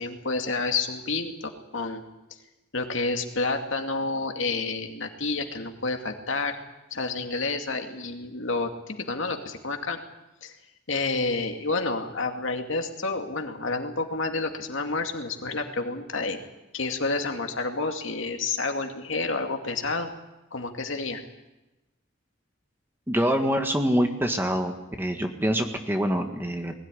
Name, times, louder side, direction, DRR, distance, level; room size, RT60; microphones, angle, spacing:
voice 1, 0.0-2.0 2.7-6.6 6.9-10.0 10.4-10.5 10.9-16.4 16.7-20.1 20.5-21.2, left 3 dB, 70° left, 4 dB, 2.5 m, -29 dB
voice 2, 23.1-24.7 25.0-26.7, equal, 10° right, 4 dB, 1.7 m, -25 dB
21.0 x 16.5 x 10.0 m, 1.0 s
head